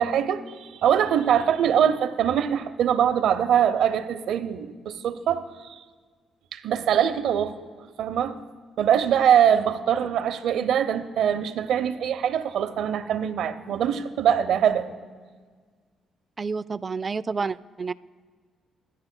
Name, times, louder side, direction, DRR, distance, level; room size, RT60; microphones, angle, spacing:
voice 1, 0.0-5.8 6.5-7.6 8.0-8.4 8.8-14.9, right 9 dB, 75° right, 11 dB, 0.7 m, -23 dB
voice 2, 16.4-17.9, right 4 dB, 35° right, 16 dB, 0.3 m, -29 dB
24.5 x 10.5 x 2.2 m, 1.5 s
cardioid pair, 90°, 0 cm